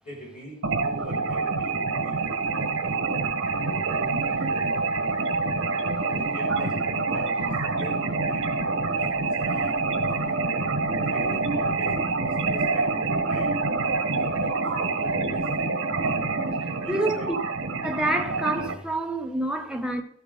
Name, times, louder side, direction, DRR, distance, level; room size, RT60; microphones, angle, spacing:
voice 1, 0.0-3.0 6.1-8.5 8.9-10.5 11.1-13.6 14.2-15.8 16.8-17.3, equal, 40° left, 5.6 m, -43 dB
sound 1, 0.6-18.7, right 3 dB, 80° right, 1.3 m, -26 dB
voice 2, 16.6-17.4 17.8-20.0, right 2 dB, 5° right, 0.9 m, -27 dB
14.0 x 8.1 x 3.8 m
head